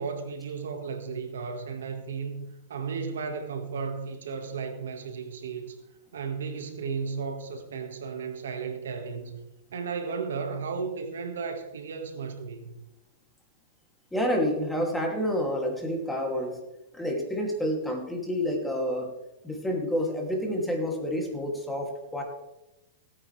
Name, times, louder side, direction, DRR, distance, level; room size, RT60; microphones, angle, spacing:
voice 1, 0.0-5.8 6.1-9.4 9.7-12.8, right 5 dB, 85° right, 6 dB, 1.8 m, -34 dB
voice 2, 14.1-16.6 16.9-19.1 19.4-22.2, equal, 5° left, 1 dB, 2.7 m, -29 dB
17.0 x 9.4 x 3.4 m, 0.97 s
hypercardioid pair, 125°, 0 cm